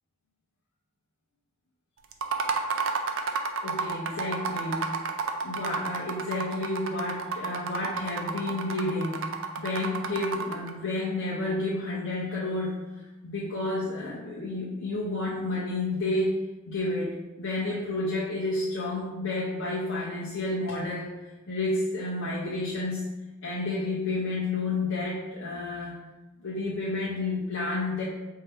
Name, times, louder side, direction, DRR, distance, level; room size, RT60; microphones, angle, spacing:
sound 1, 2.1-10.7, right 5 dB, 65° right, 0.4 m, -31 dB
voice 1, 3.6-4.9 5.4-9.2 9.6-12.8 13.2-16.3 16.7-21.1 21.5-23.0 23.4-26.0 26.4-28.0, left 2 dB, 75° left, -8 dB, 0.8 m, -30 dB
4.5 x 2.8 x 3.4 m, 1.1 s
head